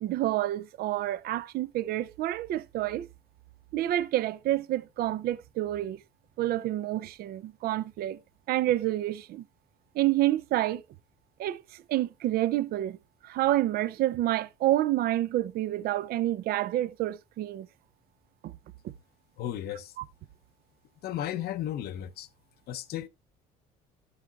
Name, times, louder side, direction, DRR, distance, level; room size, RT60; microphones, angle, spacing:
voice 1, 0.0-3.1 3.7-6.0 6.4-8.2 8.5-9.4 9.9-10.8 11.4-13.0 13.2-17.7 18.4-18.5 20.0-20.1, right 14 dB, 65° right, 0.5 m, -28 dB
voice 2, 19.4-19.9 21.0-22.3 22.7-23.1, left 11 dB, 70° left, 0.7 m, -34 dB
12.5 x 7.9 x 2.3 m
cardioid pair, 110°, 17 cm